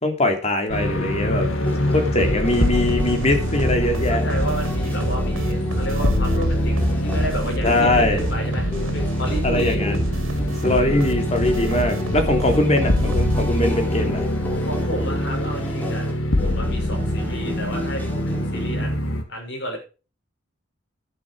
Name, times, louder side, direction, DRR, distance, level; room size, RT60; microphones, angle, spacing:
voice 1, 0.0-1.5 1.9-4.2 7.6-8.2 9.4-10.0 10.6-14.3, left 1 dB, 35° left, 4 dB, 2.9 m, -21 dB
sound 1, 0.7-19.2, left 1 dB, 90° left, 2.3 m, -24 dB
voice 2, 1.2-2.8 4.1-9.8 10.7-11.1 14.6-16.1 16.3-19.8, right 1 dB, 60° left, 1 dB, 6.4 m, -32 dB
sound 2, 1.6-19.1, left 1 dB, 10° left, 3.3 m, -33 dB
sound 3, 2.2-13.8, right 1 dB, 80° right, 2.7 m, -28 dB
11.0 x 10.5 x 4.8 m, 0.34 s
head